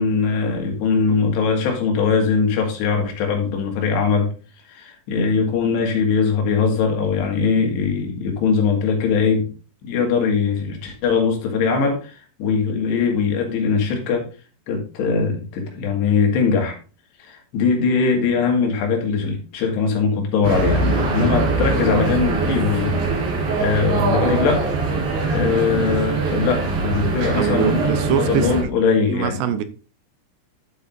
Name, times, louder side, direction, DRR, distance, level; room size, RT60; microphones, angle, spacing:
voice 1, 0.0-4.3 4.7-9.5 9.8-14.3 14.7-16.8 17.2-24.7 25.3-29.4, left 5 dB, 75° left, 3.9 m, -21 dB
sound 1, 20.4-28.6, right 3 dB, 60° right, 4.9 m, -22 dB
voice 2, 27.3-28.5 29.0-29.6, right 10 dB, 80° right, 2.8 m, -23 dB
11.5 x 8.1 x 2.5 m
omnidirectional pair, 5.0 m